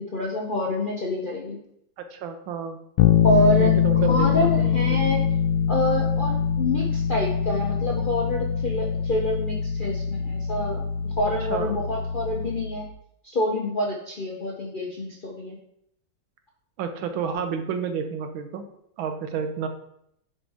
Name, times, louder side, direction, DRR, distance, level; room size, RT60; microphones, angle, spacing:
voice 1, 0.0-1.6 3.2-3.8 4.0-5.3 5.7-12.9 13.2-15.6, left 1 dB, 50° left, -2 dB, 0.6 m, -27 dB
voice 2, 2.0-2.8 3.6-5.1 11.5-11.7 16.8-18.6 19.0-19.7, right 6 dB, 85° right, 7 dB, 1.6 m, -30 dB
Bass guitar, 3.0-12.9, left 8 dB, 85° left, 1.4 m, -23 dB
10.0 x 4.3 x 3.4 m, 0.74 s
omnidirectional pair, 2.1 m